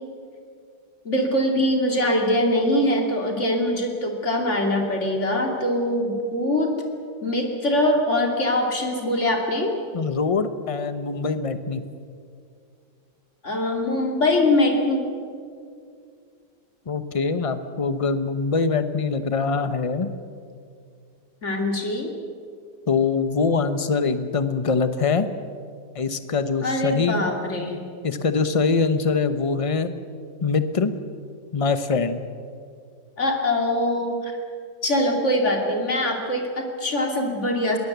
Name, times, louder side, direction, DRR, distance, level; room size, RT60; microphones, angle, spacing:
voice 1, 1.0-6.7 7.2-9.7 13.4-15.0 21.4-22.1 26.6-27.8 33.2-34.3 34.8-37.8, left 1 dB, 40° left, 3 dB, 3.1 m, -23 dB
voice 2, 9.9-11.8 16.9-20.1 22.9-25.3 25.9-27.2 28.0-29.9 30.4-30.9 31.5-32.2, left 4 dB, 25° left, 10 dB, 0.8 m, -23 dB
22.0 x 18.5 x 8.1 m, 2.3 s
omnidirectional pair, 1.9 m